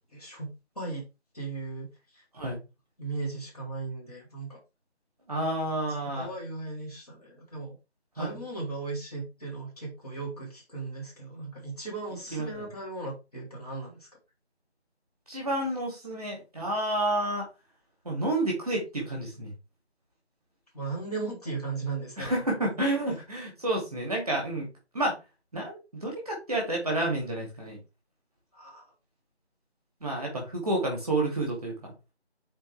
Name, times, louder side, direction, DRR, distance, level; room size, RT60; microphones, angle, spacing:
voice 1, 0.1-1.0 1.3-2.2 3.0-4.6 6.1-7.8 8.1-14.1 20.7-22.4 28.5-28.9, right 3 dB, 35° left, -3 dB, 3.4 m, -37 dB
voice 2, 5.3-6.3 8.2-8.3 12.3-12.5 15.3-17.4 18.0-19.5 22.2-24.7 24.9-25.1 25.5-27.8 30.0-31.9, right 1 dB, 5° right, -1 dB, 2.1 m, -30 dB
9.7 x 4.5 x 3.4 m, 0.27 s
figure-of-eight pair, 170°, 33 cm